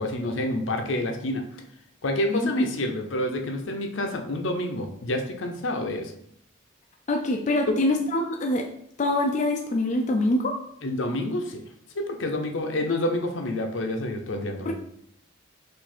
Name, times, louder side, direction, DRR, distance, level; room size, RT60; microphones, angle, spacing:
voice 1, 0.0-1.4 2.0-6.1 7.7-7.8 10.8-11.6 11.9-14.7, left 1 dB, 70° left, 4 dB, 0.7 m, -28 dB
voice 2, 2.3-2.7 7.1-8.7 9.0-10.5 14.7-14.8, left 1 dB, 35° left, 2 dB, 0.4 m, -24 dB
4.7 x 2.6 x 4.3 m, 0.70 s
head